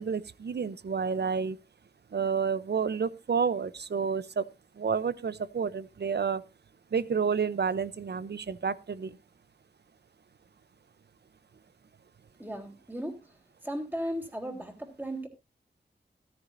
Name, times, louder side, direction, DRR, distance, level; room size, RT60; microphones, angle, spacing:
voice 1, 0.0-1.6 2.1-4.5 4.8-6.4 6.9-9.2, right 6 dB, 65° right, 0.7 m, -30 dB
voice 2, 12.4-13.4 13.6-15.3, equal, 10° right, 3.2 m, -36 dB
14.0 x 13.0 x 2.6 m
wide cardioid pair, 80°, 18 cm